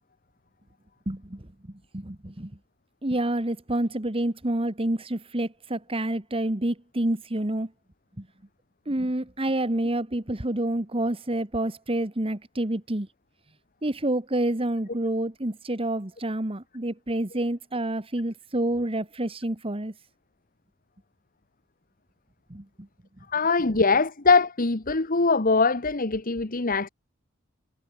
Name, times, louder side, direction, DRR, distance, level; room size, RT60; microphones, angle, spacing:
voice 1, 1.1-1.5 1.9-2.5 3.0-7.7 8.2-8.3 8.8-13.1 13.8-19.9 22.5-22.9, right 1 dB, 30° right, 1.6 m, -28 dB
voice 2, 23.3-26.9, left 4 dB, 45° left, 1.4 m, -22 dB
head